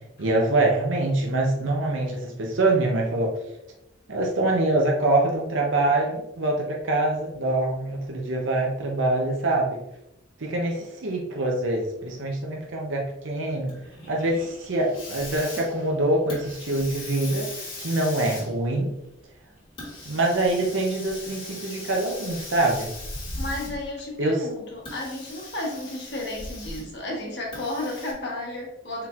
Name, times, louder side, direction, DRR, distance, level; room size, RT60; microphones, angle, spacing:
voice 1, 0.2-3.4 4.1-9.8 10.4-13.7 14.1-17.5 17.8-18.9 20.1-22.9 24.2-24.4, right 2 dB, 70° right, 0 dB, 0.7 m, -24 dB
Hiss, 13.7-24.0 24.7-27.0 27.5-28.1, left 2 dB, 25° left, 1.2 m, -39 dB
voice 2, 23.4-29.1, left 1 dB, 55° left, -2 dB, 1.2 m, -33 dB
4.2 x 3.9 x 2.4 m, 0.84 s
head